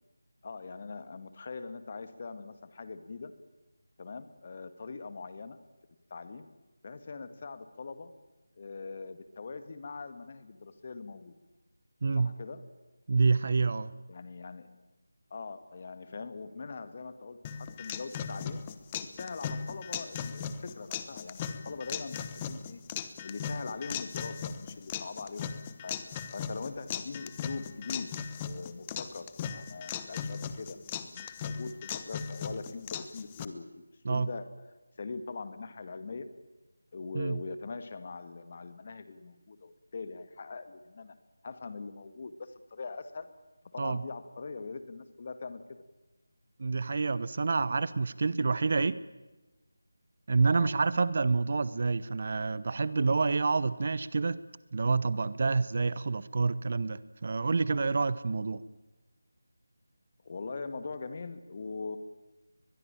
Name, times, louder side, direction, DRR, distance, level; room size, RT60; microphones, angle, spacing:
voice 1, 0.4-3.3 4.0-5.6 6.1-6.5 6.8-8.1 8.6-11.3 12.2-12.6 14.1-14.8 15.3-18.6 19.1-22.8 23.2-25.5 25.8-26.0 26.3-28.1 28.4-30.8 31.1-34.7 35.0-36.3 36.9-41.2 41.4-43.3 43.7-45.6 50.5-50.7 60.2-62.0, left 4 dB, 40° left, 11 dB, 1.9 m, -42 dB
voice 2, 12.0-12.3 13.1-13.9 34.0-34.3 37.1-37.4 43.8-44.0 46.6-49.0 50.3-54.4 54.7-58.6, right 4 dB, 45° right, 17 dB, 1.0 m, -28 dB
sound 1, 17.4-33.5, left 7 dB, 20° left, 1.1 m, -38 dB
23.0 x 21.5 x 9.0 m, 1.1 s
figure-of-eight pair, 165°, 0 cm